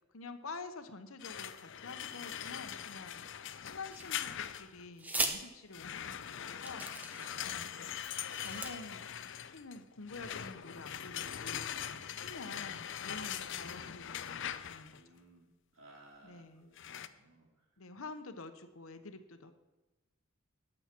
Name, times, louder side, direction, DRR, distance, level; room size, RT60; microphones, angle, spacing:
voice 1, 0.1-3.2 3.6-8.0 8.4-11.7 12.2-15.0 16.2-16.7 17.8-19.5, left 3 dB, 75° left, 9 dB, 1.0 m, -48 dB
sound 1, 1.2-4.9 5.7-15.0 16.8-17.1, left 9 dB, 60° left, 0.6 m, -42 dB
sound 2, 3.9-4.4 5.0-5.4 6.1-6.2 6.6-7.5 8.1-8.7, right 2 dB, 10° right, 1.0 m, -38 dB
voice 2, 11.8-12.6 13.0-13.2 14.9-15.5 15.7-16.7 17.0-17.5, right 2 dB, 70° right, 0 dB, 2.8 m, -59 dB
14.5 x 9.8 x 4.5 m, 1.1 s
head